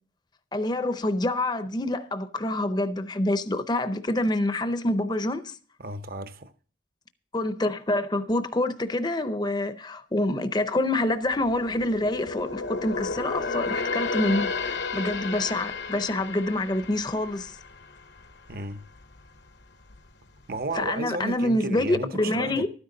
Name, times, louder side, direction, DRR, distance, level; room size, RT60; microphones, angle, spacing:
voice 1, 0.5-5.6 7.3-17.6 20.7-22.7, left 1 dB, 20° left, 0.6 m, -26 dB
voice 2, 5.8-6.5 18.5-18.8 20.5-22.7, right 2 dB, 50° right, 0.8 m, -33 dB
sound 1, 11.1-18.7 19.0-19.3 19.8-20.5 20.8-20.9, left 4 dB, 70° left, 0.9 m, -33 dB
13.0 x 9.7 x 3.8 m
head